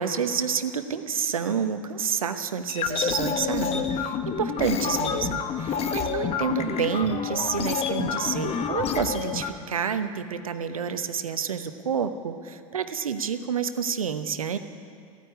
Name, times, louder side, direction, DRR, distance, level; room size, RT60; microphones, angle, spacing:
voice 1, 0.0-14.6, right 7 dB, 80° right, 10 dB, 0.9 m, -29 dB
sound 1, 2.7-9.5, left 7 dB, 35° left, 1.1 m, -28 dB
15.0 x 9.8 x 9.4 m, 2.4 s
figure-of-eight pair, 80°, 18 cm